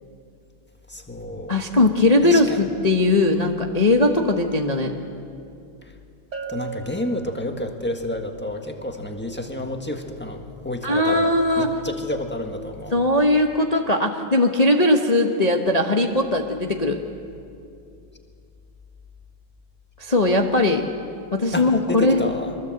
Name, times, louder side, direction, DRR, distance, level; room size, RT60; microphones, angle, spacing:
voice 1, 0.9-1.6 2.2-2.7 6.5-11.3 11.6-12.9 21.5-22.5, left 1 dB, 5° left, 4 dB, 1.3 m, -30 dB
voice 2, 1.5-5.0 10.8-11.7 12.9-17.0 20.0-20.8 21.3-22.2, left 2 dB, 35° left, 3 dB, 0.6 m, -19 dB
Bell, 6.3-7.9, right 6 dB, 55° right, 2.6 m, -36 dB
23.5 x 20.5 x 7.9 m, 2.5 s
omnidirectional pair, 2.3 m